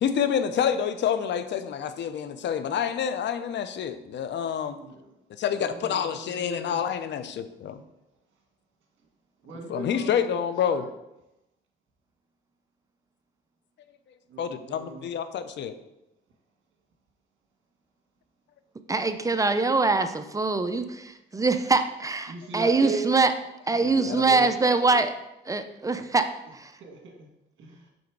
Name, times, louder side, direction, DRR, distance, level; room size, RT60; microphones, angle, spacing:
voice 1, 0.0-4.8 5.4-7.8 9.7-10.8 14.4-15.7 23.8-24.5, left 8 dB, 65° left, 11 dB, 0.6 m, -28 dB
voice 2, 4.8-5.1 5.5-6.8 9.4-10.9 14.3-15.1 22.3-23.1 23.7-25.1 26.4-27.3 27.6-27.9, right 4 dB, 75° right, 1 dB, 1.5 m, -38 dB
voice 3, 18.9-23.3 23.7-25.1 25.5-26.3 26.5-26.7, right 3 dB, 15° right, 9 dB, 0.5 m, -23 dB
5.2 x 3.9 x 4.6 m, 0.89 s
cardioid pair, 90°, 20 cm